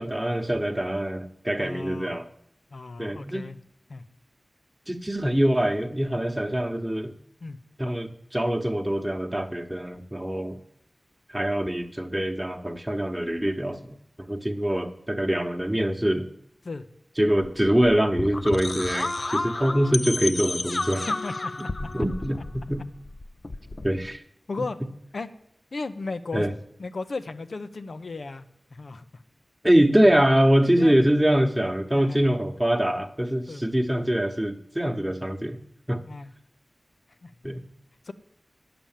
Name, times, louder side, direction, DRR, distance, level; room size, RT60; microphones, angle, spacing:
voice 1, 0.0-2.3 3.0-3.4 4.9-7.1 7.8-10.6 11.3-16.3 17.2-21.1 21.8-22.4 22.7-22.9 23.8-24.2 26.3-26.5 29.6-35.6 35.9-36.0 37.4-37.6, equal, 10° right, 2 dB, 1.1 m, -24 dB
voice 2, 1.6-2.1 2.7-3.6 3.9-4.0 7.4-7.6 16.6-16.9 20.9-21.7 24.5-24.8 25.1-25.3 25.7-26.5 26.8-28.5 28.7-29.0 30.8-31.0 31.9-32.2 33.5-33.6 36.1-36.3 37.2-37.3 38.1-38.2, left 3 dB, 85° left, 11 dB, 0.7 m, -35 dB
sound 1, 17.4-24.2, left 2 dB, 50° left, 0.4 m, -31 dB
10.5 x 6.9 x 7.4 m, 0.76 s
wide cardioid pair, 60°, 0 cm